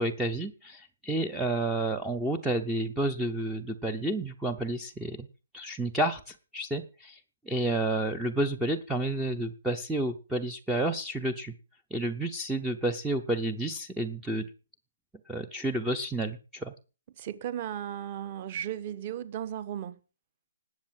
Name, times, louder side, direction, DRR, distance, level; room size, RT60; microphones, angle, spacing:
voice 1, 0.0-5.3 5.5-7.2 7.4-11.5 11.9-14.4 15.3-16.7, right 1 dB, 5° right, 0.7 m, -30 dB
voice 2, 17.2-20.0, right 10 dB, 25° right, 1.2 m, -35 dB
19.5 x 8.3 x 7.5 m
hypercardioid pair, 175°, 0 cm